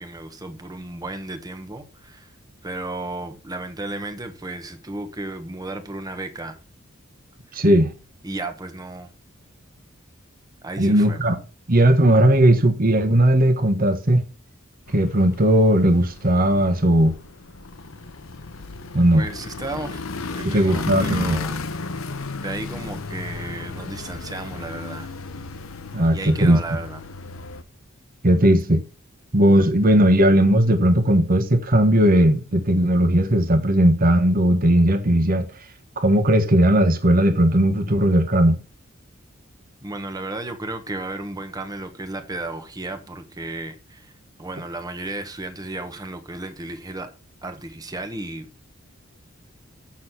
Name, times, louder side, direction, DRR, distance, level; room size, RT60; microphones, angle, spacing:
voice 1, 0.0-2.3 2.6-6.6 8.2-9.1 10.6-11.2 18.9-20.0 20.3-21.6 22.4-25.1 26.1-27.0 39.8-44.1 44.4-47.1 47.4-48.5, right 2 dB, 20° right, 1.1 m, -34 dB
voice 2, 7.5-7.9 10.8-11.4 11.7-14.2 14.9-17.1 18.9-19.3 20.4-21.4 25.9-26.8 28.2-28.8 29.3-35.5 36.0-38.6, right 1 dB, 45° right, 1.2 m, -17 dB
sound 1, 14.9-27.6, left 3 dB, 85° left, 0.9 m, -34 dB
7.3 x 6.3 x 5.7 m
head